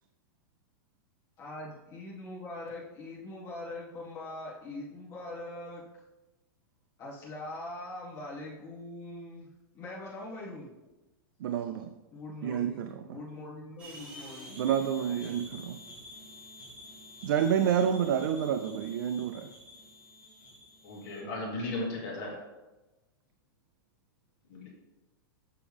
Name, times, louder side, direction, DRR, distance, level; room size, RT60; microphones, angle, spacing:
voice 1, 1.4-6.0 7.0-10.7 12.1-14.5, left 2 dB, 25° left, -6 dB, 1.8 m, -42 dB
voice 2, 11.4-11.9 12.4-13.0 14.6-15.8 17.2-19.5, right 8 dB, 65° right, 8 dB, 0.5 m, -29 dB
sound 1, 13.8-21.2, left 1 dB, 10° right, 2.1 m, -49 dB
voice 3, 20.8-22.4 24.5-24.7, left 2 dB, 45° left, -3 dB, 2.3 m, -36 dB
6.8 x 6.0 x 3.5 m, 1.1 s
supercardioid pair, 170°, 12 cm